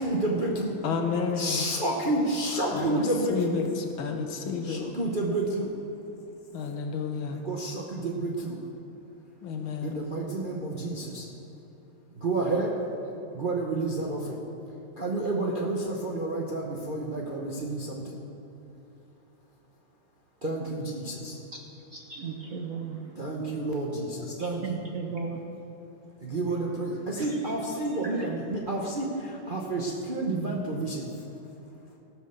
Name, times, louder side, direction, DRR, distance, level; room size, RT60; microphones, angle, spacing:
voice 1, 0.0-0.8 1.4-3.6 4.6-5.7 7.3-8.6 9.8-11.3 12.2-12.8 13.3-14.4 15.0-18.2 20.4-21.3 23.2-24.7 26.2-31.1, right 2 dB, 40° right, -2 dB, 0.7 m, -30 dB
voice 2, 0.8-1.7 2.7-4.8 6.5-7.4 9.4-10.1, left 5 dB, 75° left, 5 dB, 1.8 m, -31 dB
voice 3, 21.9-23.1 24.4-25.5 26.5-28.3, right 4 dB, 60° right, 1 dB, 0.9 m, -37 dB
16.5 x 6.3 x 6.6 m, 2.9 s
omnidirectional pair, 2.3 m